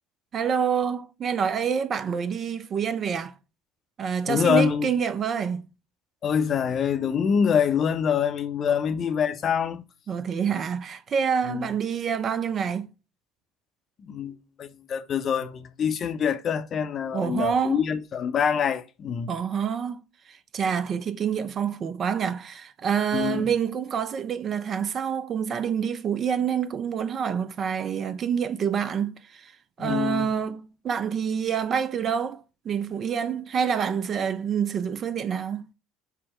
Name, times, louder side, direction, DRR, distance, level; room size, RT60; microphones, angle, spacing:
voice 1, 0.3-3.3 4.0-5.7 8.7-8.8 10.1-12.9 17.1-17.8 19.3-20.0 20.3-29.5 29.8-35.6, right 7 dB, 35° right, 0.4 m, -27 dB
voice 2, 4.3-4.9 6.2-9.8 11.5-11.7 14.1-19.3 23.1-23.5 29.8-30.3, left 7 dB, 40° left, 0.5 m, -25 dB
5.7 x 2.0 x 3.2 m
figure-of-eight pair, 65°, 0 cm